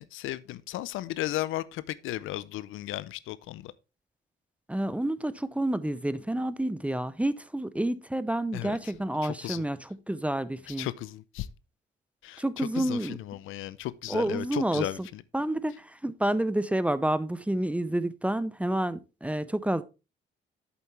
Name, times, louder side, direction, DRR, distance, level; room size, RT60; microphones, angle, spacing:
voice 1, 0.0-3.7 8.5-8.8 9.2-9.6 10.7-11.5 12.2-15.2, left 15 dB, 85° left, 0.5 m, -35 dB
voice 2, 4.7-10.9 12.4-13.2 14.1-15.1 15.3-19.8, right 1 dB, 5° right, 0.5 m, -29 dB
8.5 x 7.2 x 3.2 m
cardioid pair, 90°, 20 cm